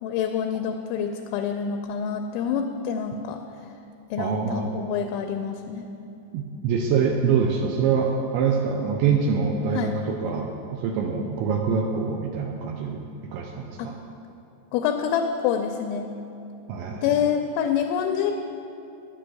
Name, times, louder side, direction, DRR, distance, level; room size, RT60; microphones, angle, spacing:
voice 1, 0.0-3.4 4.1-5.8 9.8-9.9 13.8-13.9 14.7-16.1 17.0-18.3, left 8 dB, 85° left, 5 dB, 2.7 m, -26 dB
voice 2, 4.2-4.7 6.3-14.0 16.7-17.1, right 5 dB, 80° right, 2 dB, 2.7 m, -25 dB
10.5 x 8.7 x 7.7 m, 2.7 s
omnidirectional pair, 5.8 m